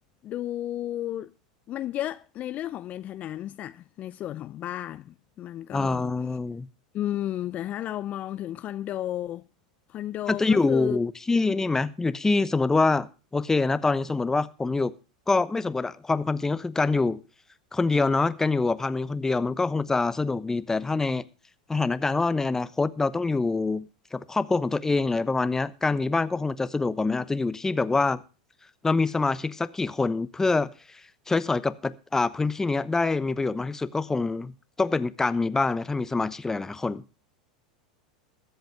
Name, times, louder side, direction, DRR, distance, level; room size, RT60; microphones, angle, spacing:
voice 1, 0.2-1.3 1.7-6.1 6.9-9.5 9.9-11.0, left 12 dB, 40° left, 0.5 m, -33 dB
voice 2, 5.7-6.7 10.3-14.9 15.3-17.2 17.7-21.2 21.7-28.2 28.8-30.7 31.3-34.5 34.8-37.0, left 3 dB, 10° left, 0.9 m, -25 dB
22.0 x 8.0 x 3.4 m
hypercardioid pair, 90°, 4 cm